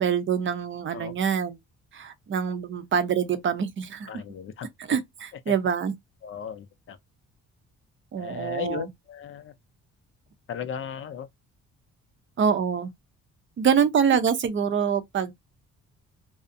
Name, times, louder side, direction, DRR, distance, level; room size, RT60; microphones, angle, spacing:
voice 1, 0.0-1.6 1.9-4.1 4.8-5.9 8.1-8.9 12.4-12.9 13.6-15.3, right 7 dB, 40° right, 0.5 m, -25 dB
voice 2, 4.1-4.7 6.2-7.0 8.2-9.5 10.5-11.3, left 8 dB, 45° left, 0.4 m, -36 dB
2.5 x 2.0 x 2.6 m
cardioid pair, 90°, 30 cm